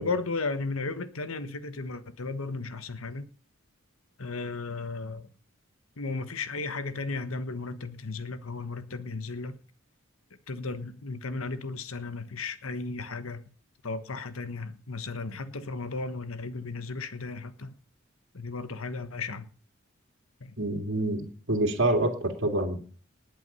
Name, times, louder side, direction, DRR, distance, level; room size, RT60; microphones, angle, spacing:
voice 1, 0.0-3.3 4.2-5.3 6.0-9.6 10.5-13.4 13.8-17.7 18.3-19.5 20.4-20.6, left 3 dB, 80° left, 1.3 m, -35 dB
voice 2, 20.6-22.8, right 1 dB, 60° right, 2.6 m, -27 dB
19.5 x 8.4 x 5.6 m
head